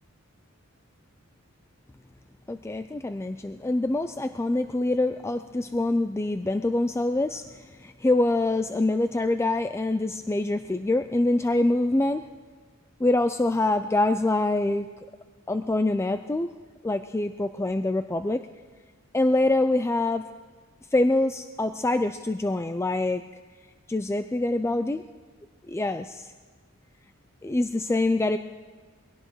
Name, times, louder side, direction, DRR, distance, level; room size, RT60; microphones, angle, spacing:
voice 1, 2.5-12.2 13.0-14.9 15.5-16.5 16.8-18.4 19.1-20.3 20.9-23.2 23.9-25.0 25.7-26.3 27.4-28.4, left 2 dB, 15° left, 9 dB, 0.3 m, -25 dB
22.5 x 17.5 x 3.1 m, 1.6 s
head